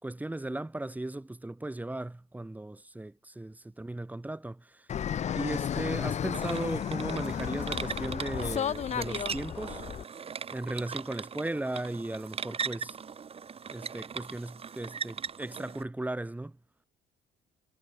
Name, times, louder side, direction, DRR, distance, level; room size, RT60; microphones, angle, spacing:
voice 1, 0.0-4.9 5.3-9.8 10.5-13.0 13.7-16.6, right 2 dB, 10° right, 3.5 m, -37 dB
Fixed-wing aircraft airplane, 4.9-10.0, left 9 dB, 40° left, 1.0 m, -33 dB
sound 1, 6.3-15.8, right 6 dB, 35° right, 3.1 m, -39 dB
cardioid pair, 110°, 17 cm